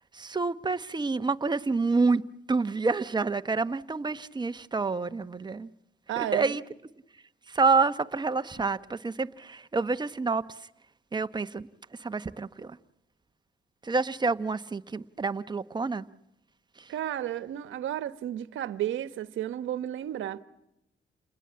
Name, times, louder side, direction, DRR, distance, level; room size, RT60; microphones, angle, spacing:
voice 1, 0.1-2.2 2.5-5.7 6.2-6.6 7.5-10.6 11.1-12.8 13.8-16.1 16.8-16.9, right 4 dB, 20° right, 0.9 m, -28 dB
voice 2, 6.1-6.6 16.9-20.4, right 12 dB, 75° right, 1.1 m, -32 dB
29.0 x 20.5 x 8.7 m
cardioid pair, 90°, 20 cm